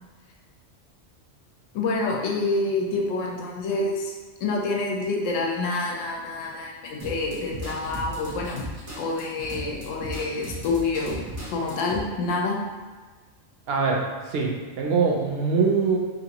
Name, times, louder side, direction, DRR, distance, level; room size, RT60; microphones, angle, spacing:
voice 1, 1.7-4.1 4.4-8.6 9.0-11.2 11.5-12.6, left 3 dB, 90° left, 0 dB, 0.9 m, -27 dB
sound 1, 7.0-12.0, right 1 dB, 20° right, 0.5 m, -36 dB
voice 2, 13.7-16.0, right 4 dB, 65° right, 0 dB, 0.7 m, -23 dB
2.8 x 2.6 x 2.8 m, 1.4 s
omnidirectional pair, 1.3 m